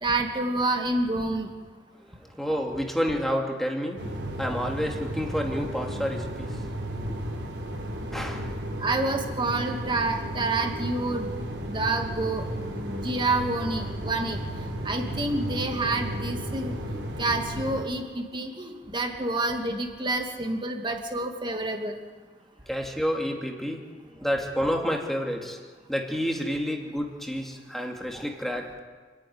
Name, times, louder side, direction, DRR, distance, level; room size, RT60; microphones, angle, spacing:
voice 1, 0.0-1.5 8.8-11.3 11.7-12.4 12.8-22.0, right 2 dB, 25° right, 3 dB, 2.3 m, -28 dB
voice 2, 2.0-4.0 4.4-6.6 8.1-8.5 22.7-23.8 24.1-25.6 25.9-28.8, equal, ahead, 1 dB, 2.6 m, -29 dB
sound 1, 4.0-17.8, equal, 85° right, 3.8 m, -34 dB
28.0 x 10.0 x 9.6 m, 1.4 s
head